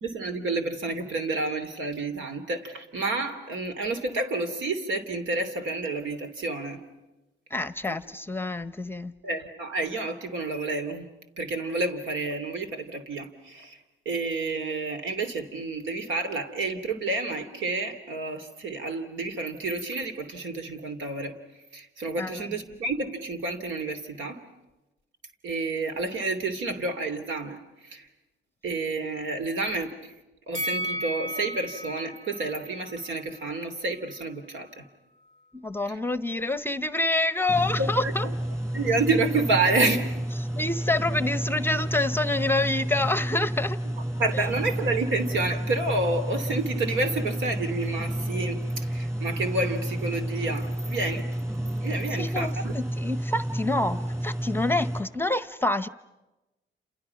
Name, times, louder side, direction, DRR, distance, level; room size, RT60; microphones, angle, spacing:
voice 1, 0.0-6.8 9.2-11.0 11.4-13.8 14.0-21.4 21.7-24.4 25.4-28.1 28.6-30.1 30.5-34.8 37.8-38.1 38.7-40.1 44.2-51.3 51.8-52.7, right 3 dB, 75° right, 8 dB, 3.1 m, -29 dB
voice 2, 7.5-9.1 22.2-22.6 35.5-38.3 40.3-43.8 44.3-44.5 52.2-55.9, left 2 dB, 10° left, 14 dB, 0.9 m, -27 dB
Bell, 30.5-33.7 34.1-34.2, equal, 35° right, 6.3 m, -35 dB
sound 1, 37.5-55.0, right 1 dB, 15° right, 6.0 m, -31 dB
29.5 x 28.5 x 5.9 m, 1.0 s
cardioid pair, 90°, 20 cm